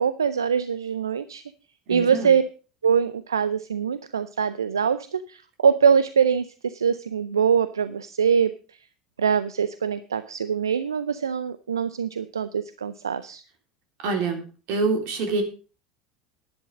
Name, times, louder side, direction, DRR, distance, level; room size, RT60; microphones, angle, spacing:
voice 1, 0.0-1.4 1.9-2.4 2.8-8.8 9.2-13.4, right 7 dB, 80° right, 14 dB, 0.5 m, -23 dB
voice 2, 1.9-2.3 14.0-14.4 14.7-15.4, right 3 dB, 55° right, 5 dB, 3.3 m, -25 dB
11.0 x 10.5 x 5.1 m, 0.36 s
figure-of-eight pair, 70°, 2 cm